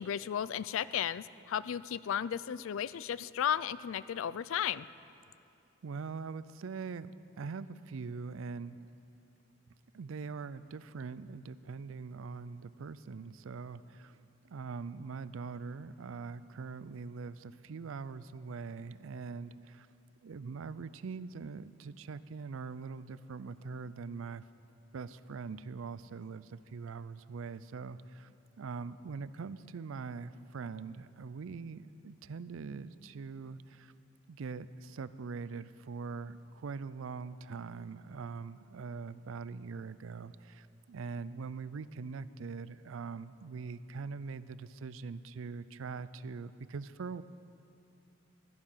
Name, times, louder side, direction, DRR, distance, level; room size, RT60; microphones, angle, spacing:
voice 1, 0.0-4.9, left 9 dB, 80° left, 18 dB, 0.3 m, -34 dB
voice 2, 5.8-8.8 9.9-19.9 20.2-24.4 24.9-28.3 28.6-33.9 34.3-47.2, right 4 dB, 85° right, 16 dB, 0.4 m, -42 dB
16.5 x 11.0 x 5.7 m, 2.7 s
head